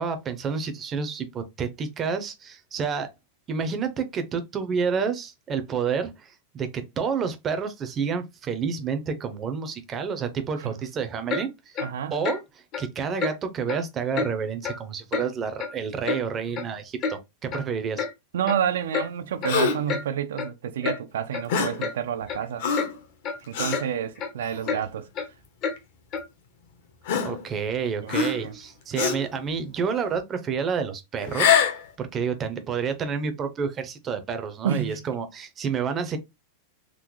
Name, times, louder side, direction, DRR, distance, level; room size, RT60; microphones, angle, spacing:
voice 1, 0.0-3.1 3.5-11.8 12.1-12.4 12.8-18.1 27.1-31.6 32.0-36.2, right 6 dB, 20° right, 0.5 m, -29 dB
Clock, 11.3-11.5 11.8-11.9 12.2-12.4 12.7-12.9 13.2-13.3 13.7-13.8 14.1-14.3 14.6-14.8 15.1-15.3 15.6-16.2 16.5-16.6 17.0-17.2 17.5-17.7 18.0-18.1 18.5-18.6 18.9-19.1 19.4-19.6 19.9-20.0 20.4-20.5 20.8-21.0 21.3-21.4 21.8-21.9 22.3-22.4 22.8-22.9 23.2-23.4 23.7-23.9 24.2-24.3 24.7-24.8 25.2-25.3 25.6-25.8 26.1-26.3, left 5 dB, 30° left, 0.5 m, -29 dB
voice 2, 11.8-12.2 18.3-22.7 23.5-25.1 28.0-28.5 34.6-35.1, right 9 dB, 90° right, 0.4 m, -29 dB
Gasp, 19.5-19.9 21.5-21.9 22.6-23.0 23.5-23.8 24.5-24.7 25.8-25.9 27.1-27.7 28.1-28.6 28.9-29.3 31.2-31.8, left 7 dB, 60° left, 0.8 m, -24 dB
3.6 x 2.1 x 3.0 m
supercardioid pair, 170°, 0 cm